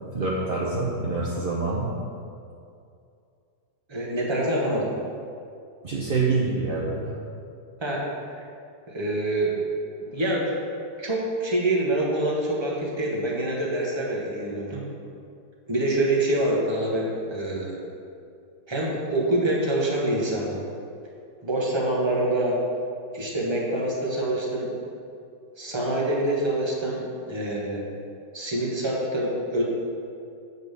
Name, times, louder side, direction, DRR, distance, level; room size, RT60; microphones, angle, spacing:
voice 1, 0.1-1.9 5.8-7.2, right 3 dB, 50° right, -5 dB, 0.6 m, -26 dB
voice 2, 3.9-4.9 7.8-8.0 8.9-9.6 10.0-10.5 11.0-14.8 15.7-17.7 18.7-20.6 21.4-22.6 23.1-24.7 25.6-27.8 28.3-29.6, right 1 dB, 20° right, -4 dB, 1.0 m, -26 dB
7.2 x 4.1 x 6.6 m, 2.5 s
omnidirectional pair, 2.0 m